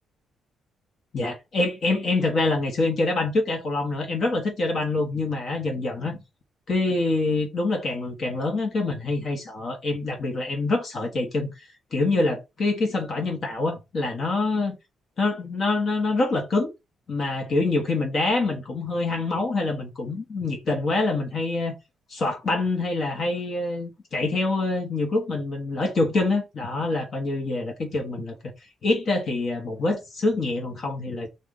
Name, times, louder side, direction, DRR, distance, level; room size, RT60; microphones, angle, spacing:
voice 1, 1.1-6.2 6.7-14.8 15.2-16.7 17.1-21.7 22.1-28.5 28.8-31.3, left 2 dB, 50° left, 1.3 m, -25 dB
5.1 x 2.7 x 3.7 m
cardioid pair, 90°, 0 cm